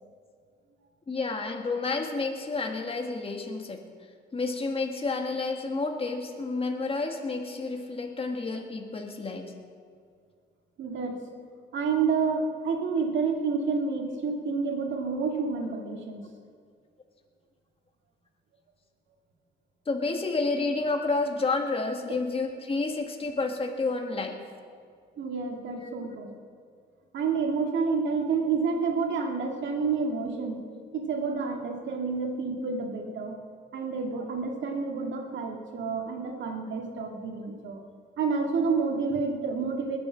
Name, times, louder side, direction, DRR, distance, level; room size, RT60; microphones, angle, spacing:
voice 1, 1.1-3.8 4.3-9.5 19.9-24.4 25.8-25.9, left 3 dB, 30° left, 3 dB, 1.7 m, -30 dB
voice 2, 10.8-11.2 11.7-16.3 25.2-26.3 27.1-30.6 30.9-33.4 33.7-37.8 38.2-40.0, right 5 dB, 70° right, 3 dB, 2.1 m, -29 dB
20.5 x 7.0 x 7.2 m, 2.1 s
cardioid pair, 90°, 20 cm